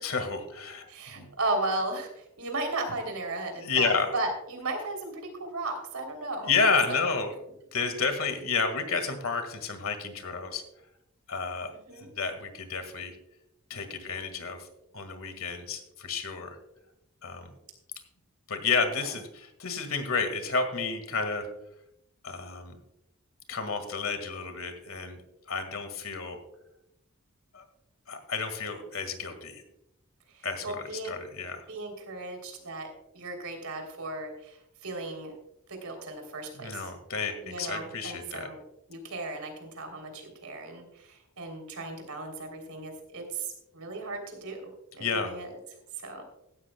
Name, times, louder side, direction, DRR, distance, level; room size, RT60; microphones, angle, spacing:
voice 1, 0.0-0.9 1.2-1.3 3.5-4.1 6.4-7.3 7.7-10.6 11.3-11.7 12.0-13.1 13.7-14.7 14.9-16.6 17.2-17.5 18.5-21.4 22.2-22.8 23.5-25.2 25.5-26.4 27.5-27.6 28.1-29.6 30.4-31.6 36.6-38.5 45.0-45.3, left 4 dB, 70° left, 8 dB, 1.8 m, -31 dB
voice 2, 0.9-6.5 6.9-7.1 11.7-12.1 18.9-19.1 30.3-31.1 31.7-35.3 35.7-36.9 37.4-38.6 38.9-45.5 46.0-46.2, right 2 dB, 90° right, 4 dB, 3.3 m, -36 dB
16.0 x 12.5 x 2.2 m, 0.82 s
head